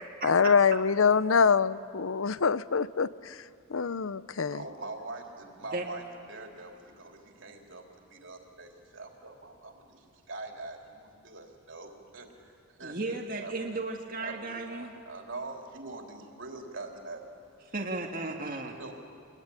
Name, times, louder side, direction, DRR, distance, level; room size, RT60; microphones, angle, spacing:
voice 1, 0.2-3.4 3.7-4.6, left 5 dB, 70° left, 16 dB, 0.7 m, -25 dB
voice 2, 4.4-12.3 12.8-13.0 13.4-13.8 14.2-17.5 18.8-18.9, right 2 dB, 60° right, 2 dB, 3.4 m, -43 dB
voice 3, 12.8-14.9 17.7-18.8, right 2 dB, 40° right, 0 dB, 1.9 m, -35 dB
26.5 x 21.5 x 9.9 m, 2.4 s
head